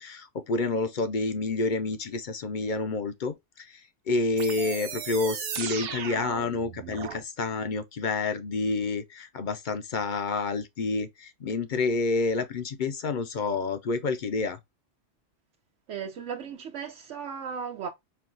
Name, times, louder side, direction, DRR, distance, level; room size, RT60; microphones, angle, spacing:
voice 1, 0.0-14.6, left 3 dB, 55° left, 0.6 m, -29 dB
sound 1, 4.4-7.2, right 8 dB, 60° right, 0.8 m, -36 dB
voice 2, 15.9-17.9, right 6 dB, 90° right, 1.0 m, -36 dB
4.6 x 2.2 x 3.7 m
omnidirectional pair, 1.2 m